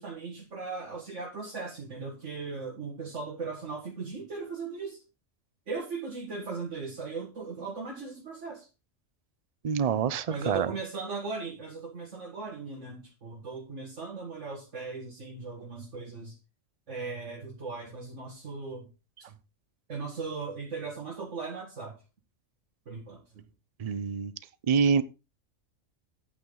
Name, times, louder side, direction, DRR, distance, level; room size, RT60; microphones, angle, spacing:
voice 1, 0.0-5.0 5.7-8.7 10.3-16.4 16.9-18.9 19.2-19.3 19.9-22.0 22.9-23.4, right 4 dB, 70° right, 2.1 m, -38 dB
voice 2, 9.6-10.7 23.8-24.3 24.7-25.0, right 6 dB, 40° right, 0.6 m, -26 dB
9.5 x 8.8 x 3.9 m
omnidirectional pair, 1.3 m